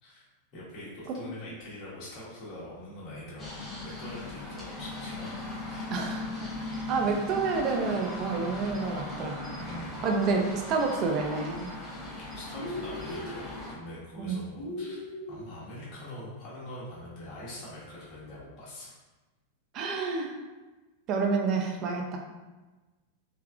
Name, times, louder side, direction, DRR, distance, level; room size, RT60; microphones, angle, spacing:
voice 1, 0.5-5.3 5.6-6.1 9.5-10.0 12.2-19.0, left 1 dB, 40° left, -8 dB, 1.1 m, -44 dB
sound 1, 3.4-13.8, left 2 dB, 20° left, 0.9 m, -38 dB
voice 2, 5.9-6.3 6.9-9.4 10.0-11.7 14.2-14.4 19.7-20.3 21.1-22.2, right 4 dB, 35° right, 2 dB, 0.5 m, -28 dB
sound 2, 12.5-13.4 14.5-15.5, left 1 dB, 55° left, 0.7 m, -38 dB
3.4 x 3.2 x 2.4 m, 1.2 s
figure-of-eight pair, 90°, 0 cm